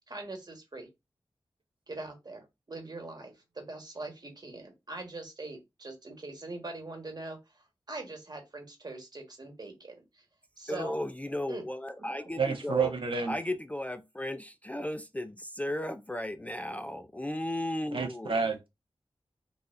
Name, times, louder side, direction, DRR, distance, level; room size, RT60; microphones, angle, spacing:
voice 1, 0.1-0.9 1.9-10.2 10.6-11.0 11.5-11.6 12.0-12.1, right 2 dB, 45° right, 1.2 m, -42 dB
voice 2, 10.7-12.9 13.3-18.3, left 1 dB, 15° left, 0.3 m, -35 dB
voice 3, 12.4-13.3 17.9-18.7, right 5 dB, 65° right, 0.6 m, -29 dB
4.1 x 2.4 x 2.5 m
cardioid pair, 55°, 10 cm